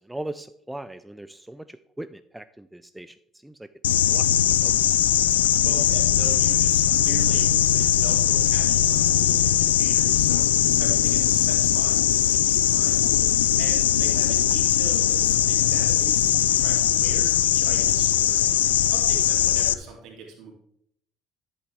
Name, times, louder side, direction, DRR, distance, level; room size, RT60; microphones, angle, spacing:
voice 1, 0.1-1.6 2.0-3.1 3.4-3.5 4.1-4.2 4.6-4.7, right 1 dB, 10° right, 12 dB, 0.4 m, -38 dB
sound 1, 3.8-19.7, left 11 dB, 80° left, 0.3 m, -20 dB
voice 2, 5.6-13.0 13.6-20.5, right 4 dB, 60° right, -1 dB, 2.8 m, -41 dB
11.0 x 8.1 x 3.4 m, 0.73 s
figure-of-eight pair, 55°, 0 cm